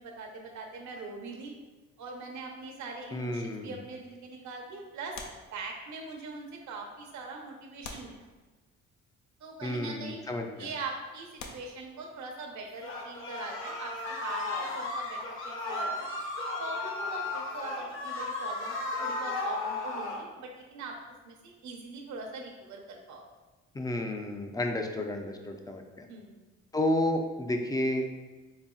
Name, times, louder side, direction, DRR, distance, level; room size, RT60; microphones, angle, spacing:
voice 1, 0.0-1.5 2.0-5.2 5.5-8.2 9.4-10.2 10.6-16.1 16.6-21.0 21.2-23.3 26.1-26.4, right 3 dB, 70° right, 1 dB, 0.8 m, -42 dB
voice 2, 3.1-3.7 9.6-10.7 23.7-26.1 26.7-28.1, left 1 dB, 15° left, 4 dB, 0.4 m, -31 dB
sound 1, 5.1-6.2 7.0-7.1 7.8-8.9 9.9-10.1 10.7-10.8 11.4-12.6 14.5-16.3 16.5-16.7, left 4 dB, 75° left, 0.6 m, -48 dB
sound 2, 12.8-20.2, left 2 dB, 45° left, 0.9 m, -34 dB
4.1 x 3.5 x 2.3 m, 1.2 s
cardioid pair, 90°, 30 cm